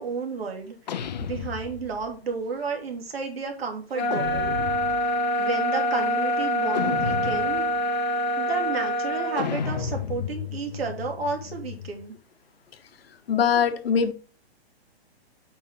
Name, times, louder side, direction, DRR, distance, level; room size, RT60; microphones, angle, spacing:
voice 1, 0.0-4.5 5.0-7.7 8.1-12.1, right 5 dB, 70° right, 2.6 m, -32 dB
sound 1, 0.9-2.2 4.1-5.2 6.7-7.8 9.4-12.1, left 7 dB, 45° left, 0.5 m, -33 dB
sound 2, 3.9-9.5, equal, 25° left, 2.0 m, -25 dB
voice 2, 13.3-14.1, left 7 dB, 65° left, 1.3 m, -22 dB
8.5 x 5.5 x 3.6 m
hypercardioid pair, 175°, 32 cm